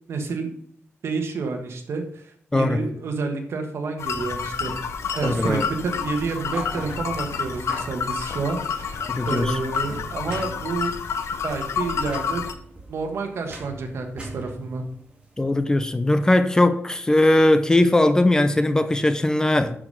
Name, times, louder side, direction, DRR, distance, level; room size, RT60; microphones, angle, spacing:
voice 1, 0.1-0.5 1.0-4.7 5.1-10.9 11.4-12.4 12.9-14.8, right 4 dB, 70° right, 1.5 m, -29 dB
voice 2, 2.5-2.8 5.2-5.7 9.1-9.5 15.4-19.8, left 1 dB, 15° left, 0.6 m, -19 dB
sound 1, 4.0-12.5, left 6 dB, 80° left, 0.8 m, -29 dB
sound 2, 4.1-16.3, right 2 dB, 25° right, 2.3 m, -43 dB
11.0 x 5.1 x 5.5 m
wide cardioid pair, 130°, 5 cm